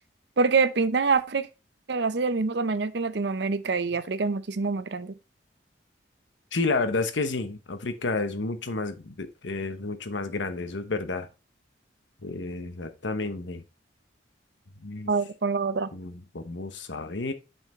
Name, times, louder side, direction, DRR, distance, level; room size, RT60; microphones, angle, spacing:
voice 1, 0.4-1.5 1.9-5.1 15.1-15.9, right 4 dB, 65° right, 0.6 m, -25 dB
voice 2, 6.5-11.3 12.2-13.6 14.8-15.1 15.9-17.3, left 3 dB, 75° left, 1.0 m, -31 dB
5.7 x 5.6 x 4.2 m
head